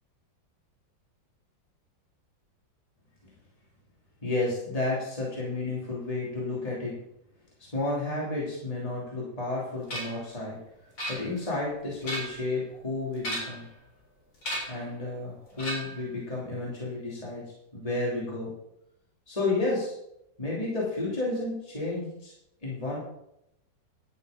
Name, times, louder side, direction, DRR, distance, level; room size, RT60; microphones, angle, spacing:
voice 1, 4.2-7.0 7.6-10.6 11.1-13.6 14.7-17.4 17.7-18.5 19.3-19.9 20.4-22.3 22.6-23.0, left 2 dB, 20° left, -5 dB, 3.1 m, -31 dB
sound 1, 9.9-10.2 11.0-11.6 11.9-12.5 13.2-13.7 14.4-14.8 15.6-16.1, equal, 70° left, 4.4 m, -35 dB
11.5 x 8.2 x 5.2 m, 0.81 s
omnidirectional pair, 2.0 m